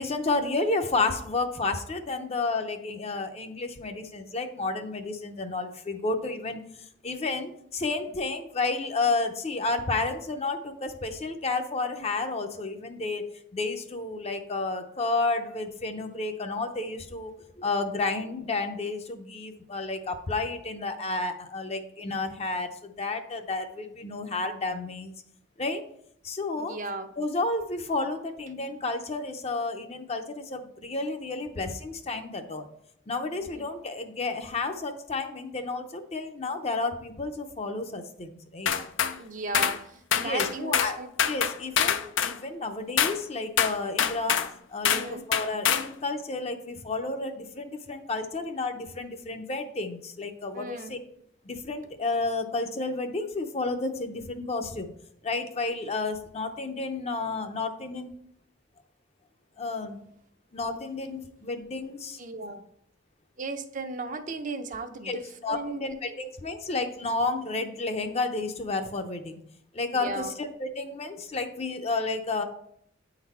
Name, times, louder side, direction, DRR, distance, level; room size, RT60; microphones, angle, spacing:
voice 1, 0.0-6.6 7.0-13.2 13.5-25.1 25.6-25.8 26.2-26.8 27.2-32.7 33.1-38.7 40.2-41.0 41.2-44.4 44.7-51.0 51.4-54.9 55.2-58.1 59.6-60.0 60.5-62.2 65.0-65.2 65.4-69.4 69.7-72.4, left 3 dB, 35° left, 6 dB, 0.6 m, -31 dB
voice 2, 26.6-27.1 33.3-33.6 39.2-41.1 44.9-45.2 50.5-51.0 62.2-62.6 63.4-66.2 69.9-70.3, right 2 dB, 45° right, 7 dB, 0.6 m, -36 dB
sound 1, 38.7-39.1 39.5-39.8 40.1-40.9 41.2-42.4 43.0-43.2 43.6-44.5 44.8-45.1 45.3-45.9, left 8 dB, 80° left, 0.5 m, -25 dB
8.8 x 4.0 x 4.2 m, 0.70 s
head